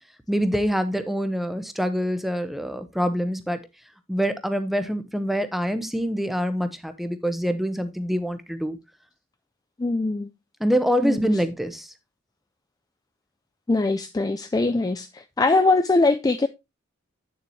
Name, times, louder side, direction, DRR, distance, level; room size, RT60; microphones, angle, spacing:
voice 1, 0.3-3.6 4.1-8.8 10.6-11.9, equal, ahead, 0.8 m, -25 dB
voice 2, 9.8-10.3 11.0-11.4 13.7-16.5, left 3 dB, 20° left, 0.4 m, -22 dB
8.7 x 6.9 x 3.0 m
head